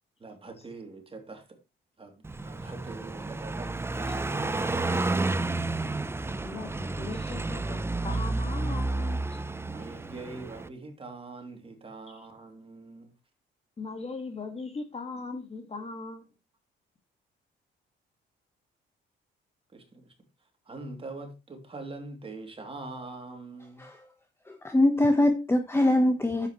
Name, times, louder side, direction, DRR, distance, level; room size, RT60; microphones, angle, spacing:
voice 1, 0.2-1.4 2.0-5.7 9.6-13.1 19.7-20.1 20.7-23.9, right 3 dB, 30° right, 2.9 m, -43 dB
Car passing by, 2.2-10.7, right 2 dB, 10° right, 0.6 m, -31 dB
voice 2, 6.4-9.4 12.1-12.2 13.8-16.3, left 3 dB, 30° left, 2.0 m, -39 dB
voice 3, 24.5-26.5, left 1 dB, 10° left, 1.2 m, -23 dB
10.0 x 8.0 x 3.1 m
cardioid pair, 90°, 20 cm